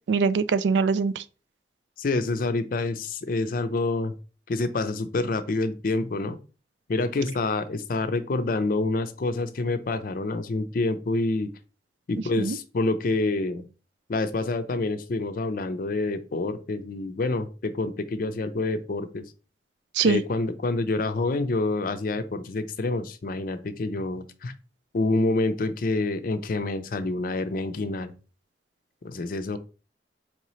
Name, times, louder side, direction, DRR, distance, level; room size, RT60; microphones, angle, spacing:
voice 1, 0.1-1.2 12.4-12.6 19.9-20.2, right 5 dB, 85° right, 0.3 m, -22 dB
voice 2, 2.0-4.1 4.5-6.4 6.9-11.5 12.1-13.6 14.1-19.2 20.0-24.5 24.9-28.1 29.0-29.6, left 2 dB, 50° left, 0.4 m, -27 dB
4.6 x 2.8 x 3.0 m
head